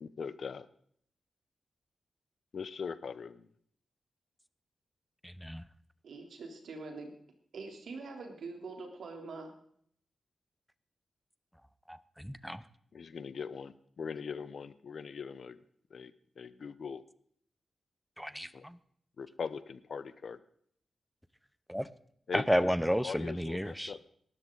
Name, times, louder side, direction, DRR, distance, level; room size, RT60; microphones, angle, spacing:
voice 1, 0.0-0.7 2.5-3.5 12.9-15.6 15.9-17.0 18.5-18.6 19.2-20.4 22.3-22.7 23.0-24.0, left 6 dB, 60° left, 15 dB, 0.8 m, -41 dB
voice 2, 5.2-5.6 11.9-12.6 18.2-18.8 21.7-21.9 22.3-24.0, equal, ahead, 15 dB, 0.7 m, -32 dB
voice 3, 6.0-7.1 7.5-9.5, right 3 dB, 80° right, 2 dB, 3.3 m, -44 dB
19.0 x 13.5 x 4.0 m, 0.65 s
wide cardioid pair, 115°, 0 cm